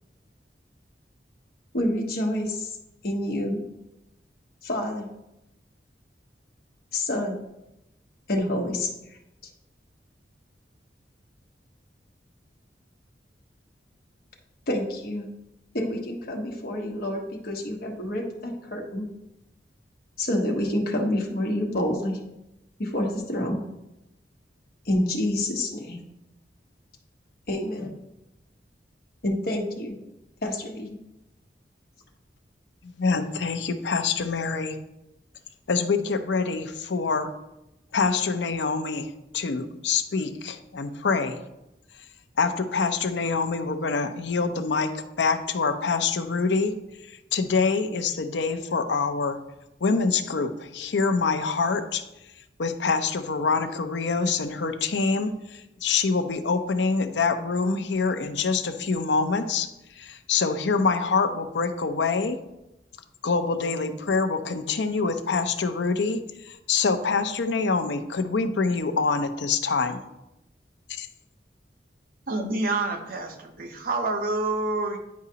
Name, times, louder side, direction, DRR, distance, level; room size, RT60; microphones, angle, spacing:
voice 1, 1.7-2.7 3.0-3.6 4.6-5.1 6.9-7.4 8.3-8.9 14.7-15.3 15.7-19.1 20.2-22.2 22.8-23.6 24.8-26.0 27.5-28.0 29.2-30.0 30.4-31.0, left 1 dB, 60° left, 0 dB, 1.2 m, -28 dB
voice 2, 32.8-34.8 35.7-37.3 37.9-41.4 42.4-46.8 47.0-49.4 49.8-52.0 52.6-59.7 60.0-62.4 63.2-70.1 71.0-71.1, left 4 dB, 85° left, 9 dB, 0.6 m, -25 dB
voice 3, 72.3-75.0, right 2 dB, 55° right, 3 dB, 0.9 m, -27 dB
9.4 x 4.9 x 2.8 m, 0.90 s
head